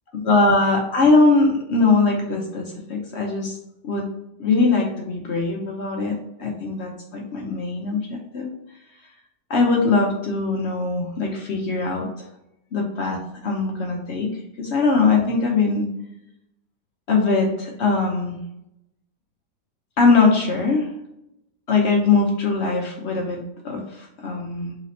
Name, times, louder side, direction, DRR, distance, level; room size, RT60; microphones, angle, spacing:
voice 1, 0.2-3.6 3.8-4.0 4.4-8.0 8.3-8.5 9.5-12.1 12.7-15.9 17.1-18.4 20.0-20.9 21.7-24.7, left 3 dB, 60° left, 1 dB, 0.7 m, -21 dB
4.1 x 2.7 x 4.1 m, 0.85 s
omnidirectional pair, 1.8 m